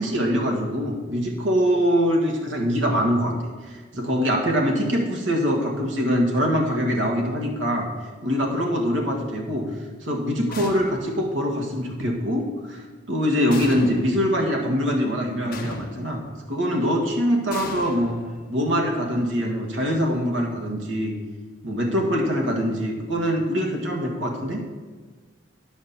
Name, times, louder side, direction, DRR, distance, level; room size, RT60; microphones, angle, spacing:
voice 1, 0.0-3.4 3.9-7.9 8.2-9.6 10.0-12.8 13.1-16.2 16.5-18.2 18.5-21.1 21.6-24.6, equal, 80° right, 0 dB, 1.8 m, -23 dB
sound 1, 10.5-11.3 13.5-14.3 15.5-16.3 17.5-18.7, left 2 dB, 50° left, 1.0 m, -37 dB
9.9 x 5.2 x 6.8 m, 1.4 s
head